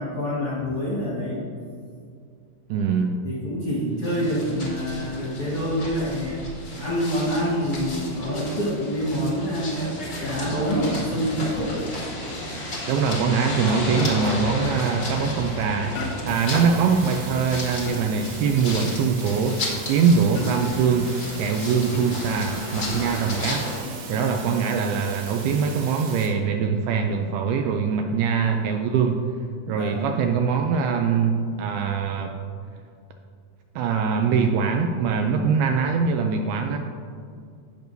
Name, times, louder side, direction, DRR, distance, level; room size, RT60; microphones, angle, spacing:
voice 1, 0.0-1.4 3.2-6.4 6.8-9.8 10.2-11.9 12.2-12.4 24.1-24.3 28.2-28.3 29.6-30.1, equal, 55° left, -8 dB, 1.6 m, -27 dB
voice 2, 2.7-3.2 12.9-15.9 16.2-19.6 19.9-23.7 24.1-29.3 29.7-32.3 33.8-36.8, right 6 dB, 85° right, 4 dB, 2.3 m, -23 dB
sound 1, 4.0-23.8, left 1 dB, 40° left, 1.9 m, -33 dB
sound 2, 14.0-14.5 16.0-16.5 17.9-18.4 20.4-20.9 21.9-22.4 23.8-24.2, left 3 dB, 75° left, 3.2 m, -34 dB
sound 3, 16.3-26.3, right 5 dB, 65° right, 2.5 m, -40 dB
17.5 x 6.1 x 2.6 m, 2.3 s
omnidirectional pair, 4.9 m